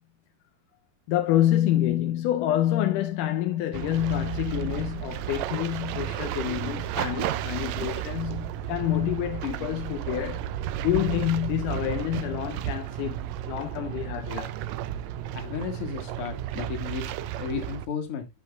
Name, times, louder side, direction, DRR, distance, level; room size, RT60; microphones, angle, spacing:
voice 1, 1.1-10.5 10.8-14.6, left 12 dB, 80° left, 2.2 m, -27 dB
sound 1, 3.7-17.9, right 11 dB, 85° right, 1.6 m, -33 dB
voice 2, 15.3-18.3, left 6 dB, 50° left, 2.4 m, -34 dB
13.5 x 5.7 x 2.3 m
omnidirectional pair, 3.8 m